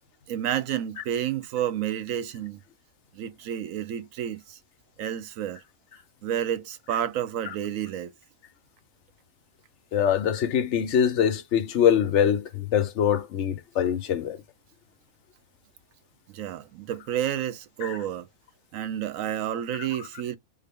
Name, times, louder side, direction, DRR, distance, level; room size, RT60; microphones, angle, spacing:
voice 1, 0.3-2.6 3.1-4.6 5.0-5.6 6.2-8.1 16.3-18.3 18.7-20.4, right 10 dB, 85° right, 1.0 m, -30 dB
voice 2, 9.9-14.4 17.8-18.0, left 9 dB, 70° left, 0.9 m, -23 dB
3.7 x 2.1 x 3.5 m
omnidirectional pair, 1.3 m